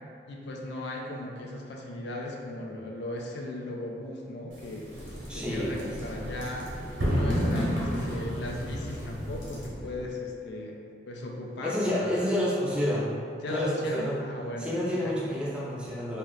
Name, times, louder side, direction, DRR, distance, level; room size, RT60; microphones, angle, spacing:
voice 1, 0.3-4.9 5.3-10.8 11.1-12.4 13.4-15.1, left 1 dB, 65° left, 0 dB, 0.3 m, -37 dB
sound 1, 4.5-9.7, equal, 75° right, 0.8 m, -31 dB
sound 2, 4.8-10.2, equal, 80° left, 0.8 m, -42 dB
voice 2, 5.3-5.9 11.6-13.1 13.4-14.2 14.6-16.2, left 1 dB, 5° right, -7 dB, 0.4 m, -29 dB
2.6 x 2.1 x 3.6 m, 2.3 s
head